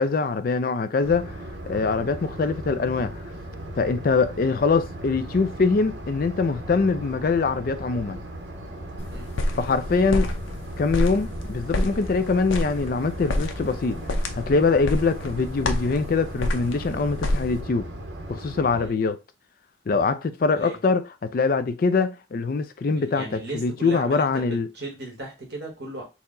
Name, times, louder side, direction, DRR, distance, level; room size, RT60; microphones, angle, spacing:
voice 1, 0.0-1.3 1.7-3.2 3.8-8.2 9.6-10.3 10.8-14.0 14.3-17.9 18.3-19.2 19.9-24.7, left 4 dB, 45° left, 0.3 m, -23 dB
sound 1, 1.0-18.9, right 1 dB, 75° right, 0.8 m, -37 dB
sound 2, 9.0-17.6, left 1 dB, 85° left, 0.6 m, -29 dB
voice 2, 22.9-26.0, right 2 dB, 55° right, 1.3 m, -37 dB
4.4 x 2.1 x 3.7 m
head